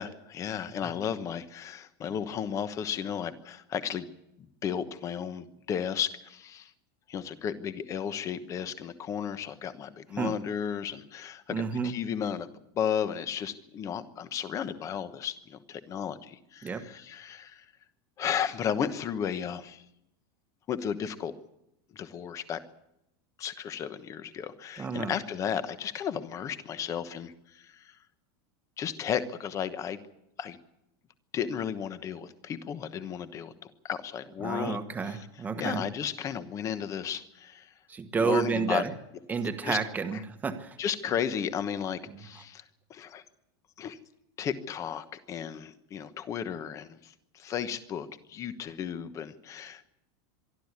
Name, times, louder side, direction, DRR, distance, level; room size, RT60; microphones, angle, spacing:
voice 1, 0.0-4.1 4.4-6.7 7.1-12.5 12.7-17.6 18.2-19.8 20.7-21.3 21.9-22.6 23.4-28.0 28.8-30.0 30.4-30.6 31.3-34.8 35.0-35.3 35.6-37.7 38.2-38.8 39.6-39.8 40.1-40.2 40.8-42.6 42.9-43.2 43.8-44.0 44.4-49.8, left 8 dB, 20° left, 12 dB, 1.1 m, -34 dB
voice 2, 11.5-11.9 16.6-16.8 24.8-25.1 34.4-35.8 37.9-38.9 39.3-40.8, right 5 dB, 10° right, 7 dB, 1.3 m, -30 dB
24.0 x 12.5 x 9.7 m, 0.84 s
supercardioid pair, 170°, 14 cm